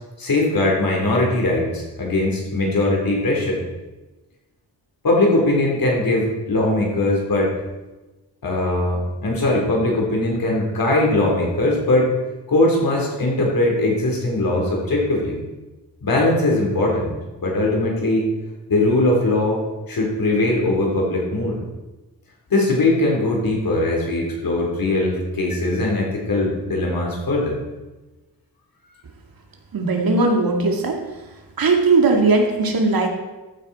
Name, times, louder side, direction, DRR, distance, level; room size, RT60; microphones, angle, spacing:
voice 1, 0.2-3.6 5.0-7.5 8.4-12.1 12.5-15.4 16.0-17.1 17.4-18.3 18.7-19.6 19.9-21.6 22.5-27.6, left 2 dB, 55° left, -2 dB, 3.9 m, -20 dB
voice 2, 29.7-31.0 31.6-33.1, right 3 dB, 55° right, 3 dB, 2.2 m, -18 dB
15.0 x 9.2 x 4.3 m, 1.1 s
wide cardioid pair, 105°, 42 cm